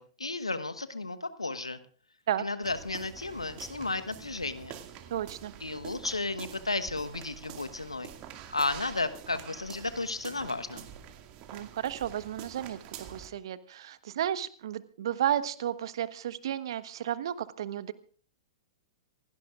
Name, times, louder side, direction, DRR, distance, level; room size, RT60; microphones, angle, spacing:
voice 1, 0.0-1.8 2.4-4.7 5.6-8.1 8.5-10.9, left 3 dB, 90° left, 11 dB, 1.2 m, -33 dB
sound 1, 2.6-13.3, right 9 dB, 40° right, 2.1 m, -47 dB
voice 2, 5.1-5.5 11.5-12.8 13.1-17.9, right 11 dB, 60° right, 13 dB, 1.2 m, -33 dB
27.0 x 17.5 x 2.5 m, 0.42 s
figure-of-eight pair, 105°, 3 cm